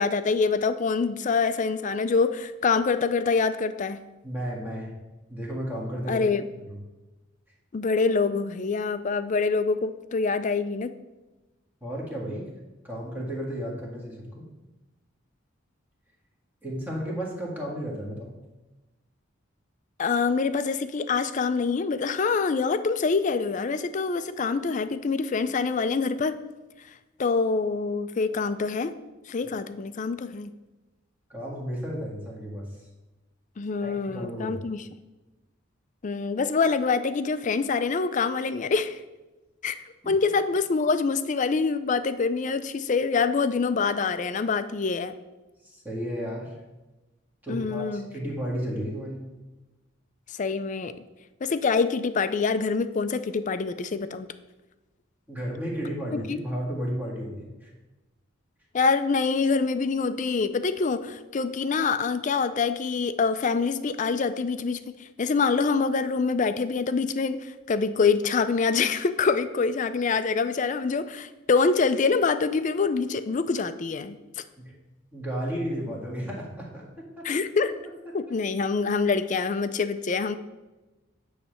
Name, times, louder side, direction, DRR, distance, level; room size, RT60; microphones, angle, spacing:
voice 1, 0.0-4.0 6.1-6.5 7.7-10.9 20.0-26.4 27.2-28.9 29.3-30.5 33.6-34.8 36.0-39.0 39.6-39.8 40.1-45.1 47.5-48.1 50.4-50.9 51.4-54.3 56.1-56.4 58.7-64.8 65.2-67.4 67.7-74.1 77.2-77.7 78.1-80.4, left 4 dB, 40° left, 12 dB, 0.4 m, -25 dB
voice 2, 4.2-4.9 5.3-6.2 6.7-6.8 11.8-12.5 12.8-14.5 16.6-18.4 31.3-32.7 33.8-34.6 40.0-40.1 45.6-46.5 47.4-49.3 55.3-57.7 74.6-74.7 75.1-77.3, equal, 10° right, -3 dB, 1.7 m, -33 dB
9.6 x 3.3 x 6.4 m, 1.1 s
head